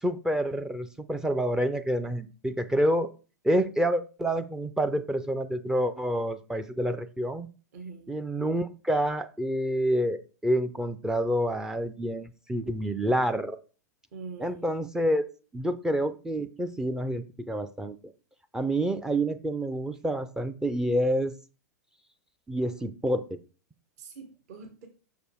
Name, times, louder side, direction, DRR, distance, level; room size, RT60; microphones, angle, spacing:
voice 1, 0.0-3.1 3.4-7.5 8.1-13.6 14.4-15.2 15.5-18.1 18.5-21.3 22.5-23.4, right 1 dB, 5° right, 0.4 m, -28 dB
voice 2, 7.7-8.1 14.1-14.8 24.0-24.9, right 5 dB, 55° right, 1.2 m, -44 dB
6.5 x 5.0 x 4.5 m
figure-of-eight pair, 100°, 9 cm